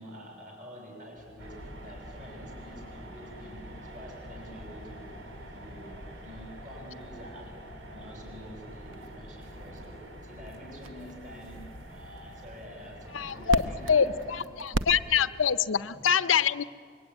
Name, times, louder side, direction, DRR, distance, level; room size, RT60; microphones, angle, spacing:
voice 1, 0.0-5.2 5.5-15.2 15.9-16.1, equal, 40° right, 1 dB, 7.1 m, -47 dB
sound 1, 1.2-15.5, right 1 dB, 90° right, 0.9 m, -42 dB
sound 2, 1.4-14.4, equal, 75° right, 3.4 m, -46 dB
voice 2, 13.1-13.6 13.9-16.6, left 7 dB, 85° left, 13 dB, 0.6 m, -25 dB
25.0 x 23.0 x 9.6 m, 2.2 s
head